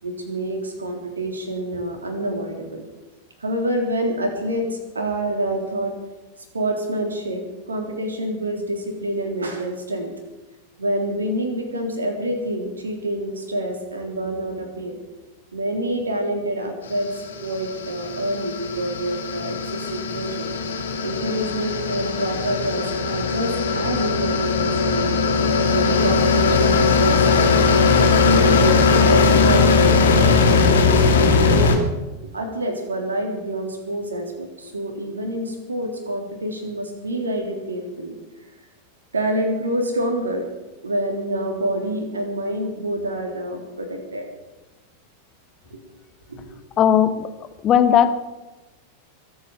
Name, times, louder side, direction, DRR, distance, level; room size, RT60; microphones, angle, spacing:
voice 1, 0.0-2.8 3.4-5.9 6.5-10.1 10.8-15.0 15.5-20.5 21.0-25.2 25.7-27.3 28.2-29.7 30.2-31.8 32.3-38.1 39.1-40.5 40.8-44.3 45.7-45.8 46.3-46.6, right 1 dB, 75° right, 3 dB, 3.7 m, -27 dB
sound 1, 17.1-31.8, left 4 dB, 65° left, 2.5 m, -19 dB
voice 2, 46.8-47.3 47.6-48.1, left 9 dB, 30° left, 10 dB, 1.4 m, -16 dB
23.0 x 8.8 x 6.9 m, 1.1 s
figure-of-eight pair, 90°, 0 cm